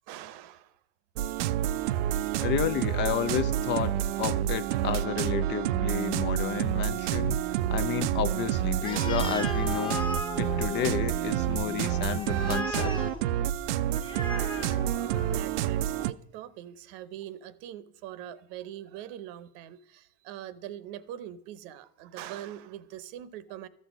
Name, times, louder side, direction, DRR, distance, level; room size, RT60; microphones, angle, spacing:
voice 1, 0.1-0.7 2.4-2.5 14.3-23.7, right 11 dB, 60° right, 0.8 m, -43 dB
sound 1, 1.2-16.1, right 11 dB, 85° right, 0.6 m, -28 dB
voice 2, 2.4-10.0 10.4-12.9, left 10 dB, 35° left, 0.4 m, -31 dB
Animal, 8.8-15.5, left 2 dB, 15° left, 1.0 m, -37 dB
13.5 x 6.3 x 5.1 m
supercardioid pair, 135°, 35 cm